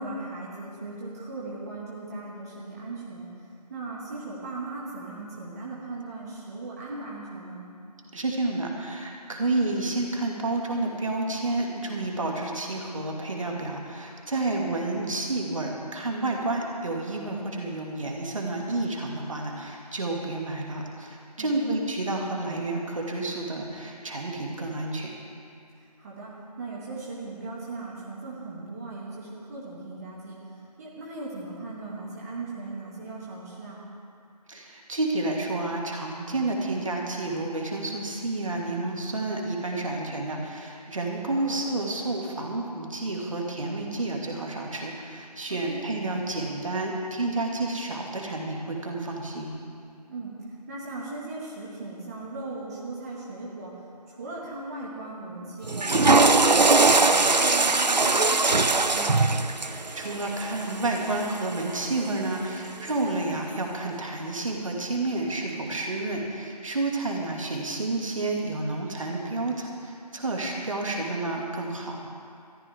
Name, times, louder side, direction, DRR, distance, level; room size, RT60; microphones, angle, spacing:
voice 1, 0.0-3.3 3.7-7.7 14.3-14.7 21.4-21.8 26.0-26.3 26.6-30.4 30.8-33.8 41.3-41.6 45.5-45.8 50.1-50.3 50.7-53.7 54.1-55.9 56.2-59.2, right 3 dB, 25° right, -6 dB, 1.9 m, -38 dB
voice 2, 8.1-25.1 34.5-49.5 59.6-72.1, right 2 dB, 50° right, 0 dB, 2.3 m, -30 dB
Water / Toilet flush, 55.6-61.9, right 3 dB, 85° right, 0.8 m, -21 dB
21.5 x 14.0 x 3.6 m, 2.4 s
figure-of-eight pair, 160°, 21 cm